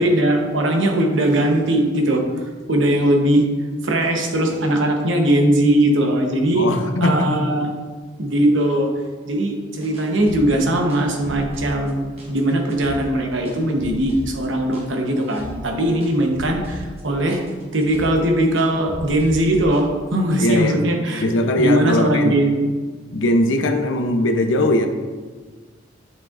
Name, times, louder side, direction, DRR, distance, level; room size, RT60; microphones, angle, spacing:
voice 1, 0.0-2.2 2.7-3.4 3.8-6.7 7.0-7.7 8.2-8.9 9.2-12.0 12.3-17.4 17.7-21.2 21.6-22.6, right 1 dB, 80° right, 3 dB, 0.9 m, -19 dB
voice 2, 6.5-7.3 20.4-20.8 21.2-22.4 23.1-24.9, left 1 dB, 80° left, 6 dB, 0.6 m, -19 dB
sound 1, 9.8-19.9, equal, 30° right, 1.2 m, -37 dB
8.0 x 5.5 x 2.4 m, 1.4 s
head